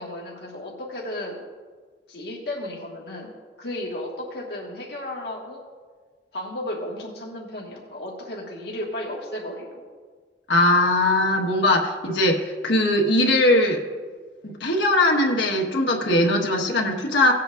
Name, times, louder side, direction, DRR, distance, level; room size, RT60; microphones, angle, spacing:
voice 1, 0.0-1.4 2.1-5.7 6.3-9.9, left 1 dB, 70° left, -3 dB, 1.6 m, -34 dB
voice 2, 10.5-13.8 14.4-17.3, left 1 dB, 90° left, 0 dB, 1.4 m, -20 dB
18.5 x 8.3 x 2.5 m, 1.5 s
head